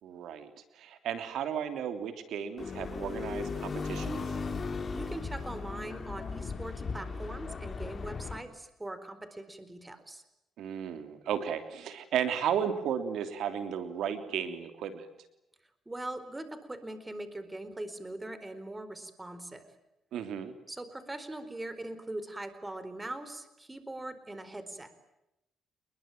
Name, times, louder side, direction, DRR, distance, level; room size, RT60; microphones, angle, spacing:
voice 1, 0.0-4.3 10.6-15.1 20.1-20.5, right 8 dB, 75° right, 8 dB, 3.1 m, -34 dB
sound 1, 2.6-8.4, left 4 dB, 40° left, 3.4 m, -37 dB
voice 2, 4.9-10.2 15.9-19.7 20.7-24.9, right 1 dB, 15° right, 12 dB, 4.3 m, -41 dB
28.5 x 22.0 x 9.2 m, 0.87 s
cardioid pair, 90°, 0 cm